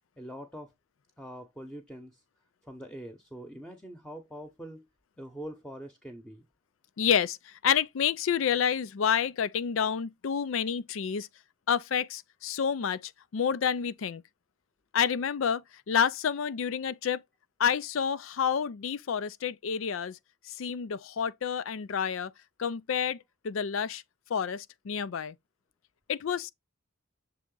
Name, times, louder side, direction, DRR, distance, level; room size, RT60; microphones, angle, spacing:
voice 1, 0.2-0.7 1.2-2.2 2.6-4.9 5.2-6.5, equal, 5° left, 0.8 m, -43 dB
voice 2, 7.0-11.3 11.7-14.2 14.9-17.2 17.6-20.2 20.4-22.3 22.6-24.0 24.3-25.4 26.1-26.5, left 7 dB, 80° left, 0.4 m, -29 dB
6.8 x 3.6 x 3.8 m
head